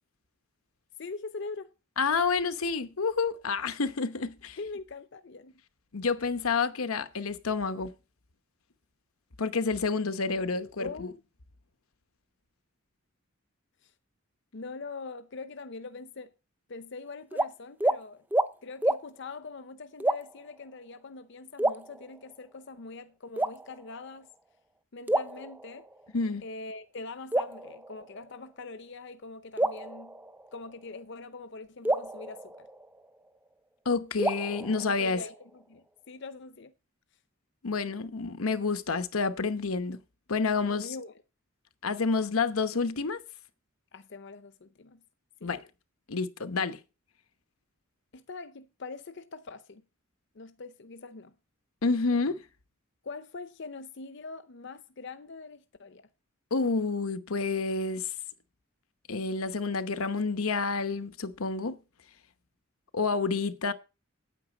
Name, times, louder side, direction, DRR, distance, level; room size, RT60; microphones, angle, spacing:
voice 1, 1.0-1.7 4.6-5.6 10.8-11.2 13.8-13.9 14.5-16.3 16.7-18.2 18.6-24.3 24.9-25.9 26.4-30.2 30.5-32.7 34.8-36.7 40.7-41.1 43.9-45.0 45.4-45.5 48.1-49.8 50.3-51.3 53.0-56.0, left 3 dB, 55° left, 0.7 m, -43 dB
voice 2, 2.0-4.6 5.9-7.9 9.4-11.1 26.1-26.4 33.9-35.2 37.6-40.0 40.3-40.9 41.8-43.2 45.4-45.6 46.1-46.8 51.8-52.4 56.5-58.1 59.1-61.8 62.9-63.7, left 4 dB, 90° left, 1.0 m, -29 dB
sound 1, 17.3-17.5 17.8-18.0 18.3-18.5 18.8-19.0 20.0-20.5 21.6-22.4 23.4-24.1 25.1-26.1 27.3-28.4 29.6-30.8 31.8-33.3 34.2-35.4, right 1 dB, 10° right, 0.5 m, -30 dB
9.2 x 8.9 x 5.1 m
head